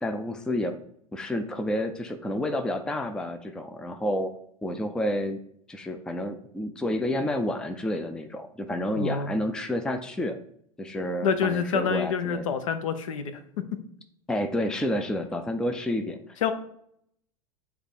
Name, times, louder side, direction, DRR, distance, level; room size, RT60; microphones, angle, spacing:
voice 1, 0.0-0.7 1.1-4.3 4.6-5.4 5.7-10.4 10.8-12.5 14.3-16.2, left 1 dB, 5° left, 7 dB, 0.5 m, -29 dB
voice 2, 8.9-9.3 11.2-13.3 16.4-16.5, left 6 dB, 55° left, 10 dB, 0.8 m, -27 dB
8.0 x 3.3 x 5.2 m, 0.67 s
figure-of-eight pair, 90°, 19 cm